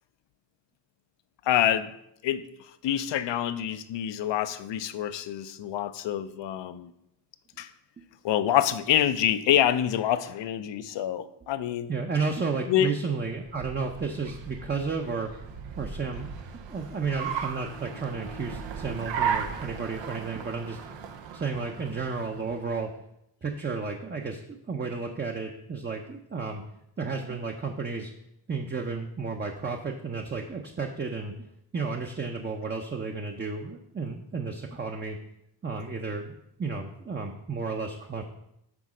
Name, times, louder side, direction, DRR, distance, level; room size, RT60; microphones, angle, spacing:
voice 1, 1.5-1.9 2.2-2.5 2.8-6.9 7.6-7.7 8.2-11.9 12.7-12.9, left 11 dB, 75° left, 14 dB, 0.6 m, -26 dB
voice 2, 11.9-15.3 15.8-20.8 21.3-22.9 23.4-24.4 24.7-26.6 27.0-28.1 28.5-31.3 31.7-35.2 35.6-36.3 36.6-38.2, right 4 dB, 25° right, 3 dB, 0.6 m, -32 dB
Car, 13.3-22.8, right 7 dB, 90° right, 0.8 m, -36 dB
6.1 x 4.0 x 6.1 m, 0.79 s
cardioid pair, 90°, 43 cm